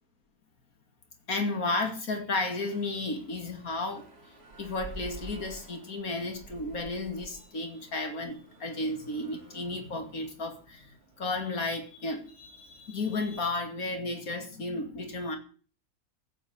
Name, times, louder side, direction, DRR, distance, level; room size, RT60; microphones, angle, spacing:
voice 1, 1.3-4.1 4.6-15.4, left 2 dB, 70° left, 2.8 m, -33 dB
sound 1, 2.5-13.5, right 2 dB, 45° right, 3.2 m, -51 dB
15.5 x 7.8 x 7.4 m
omnidirectional pair, 1.6 m